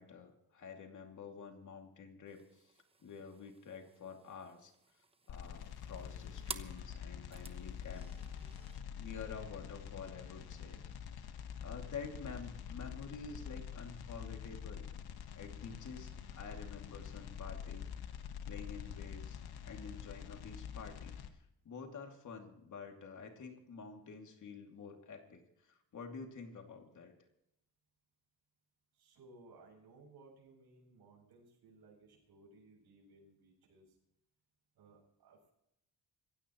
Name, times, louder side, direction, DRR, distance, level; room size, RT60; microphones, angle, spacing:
voice 1, 0.0-2.7 3.0-4.7 5.3-8.1 9.0-11.3 11.6-14.9 15.3-17.9 18.5-19.4 19.6-27.1, left 5 dB, 50° left, 3 dB, 2.7 m, -49 dB
sound 1, 2.3-8.8, right 3 dB, 15° right, 0.9 m, -53 dB
sound 2, 5.3-21.3, left 8 dB, 75° left, 1.5 m, -46 dB
voice 2, 28.9-34.0 34.7-35.5, right 3 dB, 80° right, 0 dB, 8.0 m, -61 dB
26.0 x 16.0 x 3.1 m, 0.83 s
cardioid pair, 150°, 38 cm